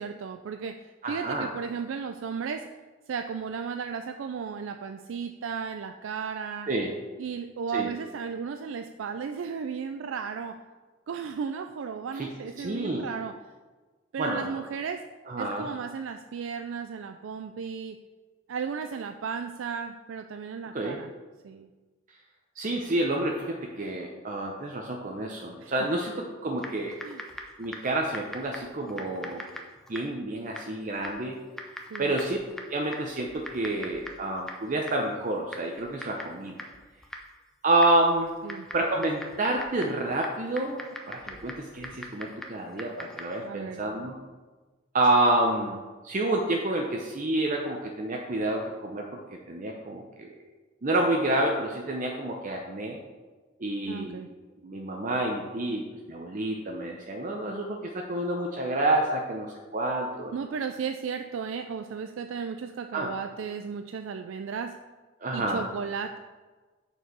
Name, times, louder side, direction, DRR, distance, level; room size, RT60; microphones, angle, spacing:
voice 1, 0.0-2.7 3.1-6.7 7.2-10.6 11.1-13.4 14.1-15.0 15.4-18.0 18.5-21.1 21.4-21.7 25.6-25.7 27.0-27.2 31.9-32.2 38.4-38.7 43.4-43.8 53.9-54.3 60.3-64.8 65.3-66.2, right 6 dB, 80° right, 7 dB, 0.4 m, -35 dB
voice 2, 1.0-1.5 6.7-6.9 7.7-7.9 12.2-12.3 12.6-13.1 14.2-14.6 15.3-15.7 20.7-21.0 22.6-26.1 26.4-27.0 27.6-29.4 29.9-31.4 32.0-32.4 32.7-36.5 37.6-38.3 38.7-44.1 44.9-45.8 46.0-49.2 49.5-50.3 50.8-53.0 53.6-54.2 54.6-55.8 56.1-60.3 62.9-63.1 65.2-65.6, right 2 dB, 40° right, 1 dB, 0.6 m, -28 dB
Typing, 26.6-43.5, equal, 5° left, 0.6 m, -44 dB
6.7 x 4.7 x 6.1 m, 1.3 s
head